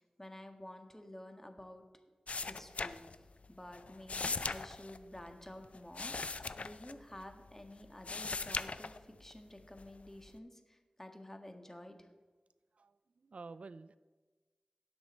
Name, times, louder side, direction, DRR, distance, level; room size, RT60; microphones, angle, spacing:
voice 1, 0.0-1.9 2.4-12.1, left 1 dB, 20° left, 5 dB, 1.5 m, -51 dB
sound 1, 2.3-3.5 3.7-7.5 7.8-9.3 9.8-10.4, left 4 dB, 80° left, 0.5 m, -40 dB
voice 2, 12.7-14.0, right 4 dB, 75° right, 14 dB, 0.3 m, -51 dB
17.5 x 6.3 x 4.4 m, 1.3 s
cardioid pair, 40°, 2 cm